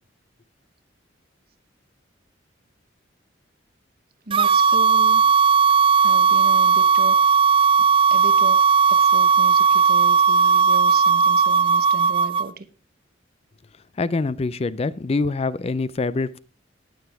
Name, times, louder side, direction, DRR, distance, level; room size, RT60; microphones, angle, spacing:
sound 1, 4.3-12.5, right 6 dB, 25° right, 0.4 m, -17 dB
voice 1, 4.3-5.2 6.0-7.2 7.8-12.7, right 3 dB, 50° right, 0.9 m, -36 dB
voice 2, 14.0-16.4, left 3 dB, 30° left, 0.4 m, -25 dB
18.5 x 6.9 x 3.4 m
head